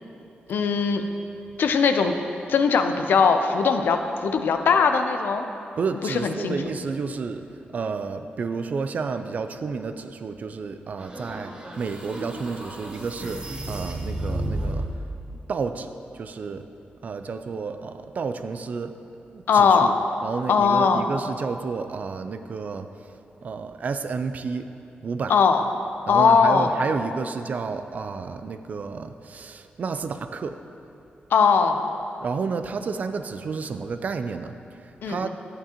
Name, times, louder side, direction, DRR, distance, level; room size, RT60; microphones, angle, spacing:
voice 1, 0.5-1.0 1.6-2.1 2.5-5.5 6.0-6.6 19.5-19.9 20.5-21.1 25.3-25.6 26.1-26.7 31.3-31.8 35.0-35.3, left 5 dB, 75° left, 7 dB, 0.5 m, -20 dB
voice 2, 5.8-7.5 7.7-14.9 15.5-16.6 17.0-18.9 19.3-19.9 20.2-22.9 23.4-24.7 25.0-25.3 26.1-30.6 32.2-35.3, right 5 dB, 45° right, 9 dB, 0.4 m, -31 dB
sound 1, 11.0-15.0, right 1 dB, 25° right, 0.9 m, -32 dB
11.0 x 8.9 x 2.9 m, 2.9 s
wide cardioid pair, 155°, 4 cm